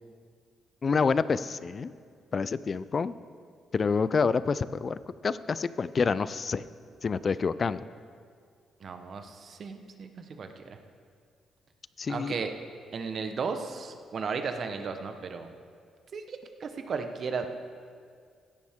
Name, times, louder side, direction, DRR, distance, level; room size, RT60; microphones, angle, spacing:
voice 1, 0.8-1.9 2.3-3.1 3.7-5.0 5.2-6.6 7.0-7.8 12.0-12.3, left 5 dB, 40° left, 16 dB, 0.4 m, -27 dB
voice 2, 8.8-10.8 12.1-12.5 12.9-15.5 16.1-17.6, right 5 dB, 50° right, 7 dB, 1.1 m, -35 dB
16.0 x 11.5 x 3.7 m, 2.1 s
cardioid pair, 90°, 0 cm